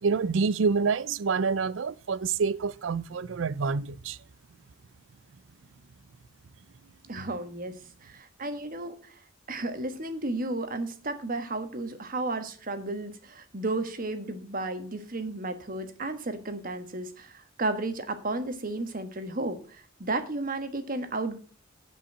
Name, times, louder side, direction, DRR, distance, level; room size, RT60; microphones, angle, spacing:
voice 1, 0.0-4.2 7.2-7.3, right 5 dB, 65° right, 0.4 m, -27 dB
voice 2, 7.1-7.7 8.0-9.2 9.5-21.4, right 2 dB, 45° right, 1.4 m, -33 dB
9.9 x 5.5 x 7.5 m
head